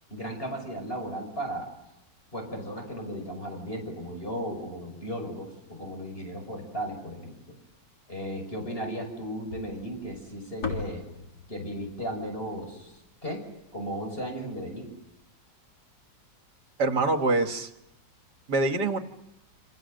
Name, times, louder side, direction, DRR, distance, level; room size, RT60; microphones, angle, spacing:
voice 1, 0.1-1.7 2.3-7.6 8.1-11.1 11.5-13.4 13.7-14.9, equal, 30° left, 3 dB, 6.1 m, -35 dB
sound 1, 9.5-13.8, left 4 dB, 60° left, 4.0 m, -39 dB
voice 2, 16.8-17.7 18.5-19.0, right 2 dB, 65° right, 7 dB, 2.2 m, -24 dB
28.5 x 26.5 x 6.6 m, 0.91 s
omnidirectional pair, 1.9 m